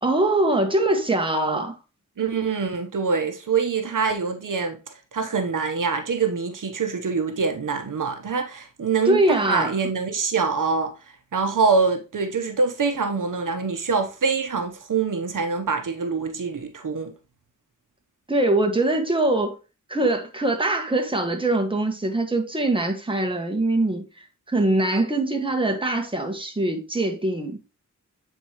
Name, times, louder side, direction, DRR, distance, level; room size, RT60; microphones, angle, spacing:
voice 1, 0.0-1.8 9.1-9.7 18.3-19.6 19.9-24.0 24.5-27.6, right 2 dB, 15° right, 1.5 m, -22 dB
voice 2, 2.2-4.8 5.1-10.9 11.3-17.1, right 5 dB, 75° right, 1.0 m, -24 dB
8.0 x 4.5 x 3.0 m
wide cardioid pair, 65°, 32 cm